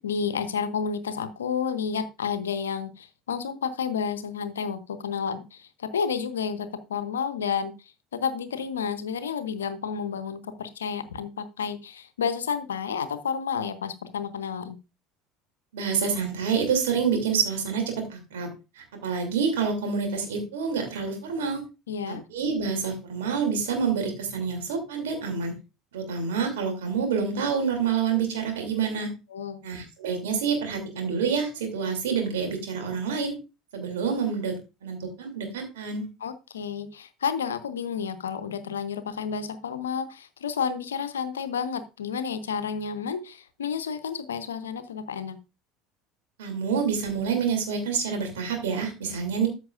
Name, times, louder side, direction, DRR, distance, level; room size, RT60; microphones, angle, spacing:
voice 1, 0.0-7.7 8.1-14.8 21.9-22.2 29.3-29.6 36.2-45.4, left 6 dB, 75° left, 13 dB, 0.8 m, -31 dB
voice 2, 15.7-21.6 22.0-25.6 25.9-29.1 29.6-33.3 33.7-36.0 46.4-49.5, right 6 dB, 70° right, 3 dB, 2.9 m, -27 dB
13.5 x 6.1 x 2.5 m, 0.28 s
figure-of-eight pair, 65°, 0 cm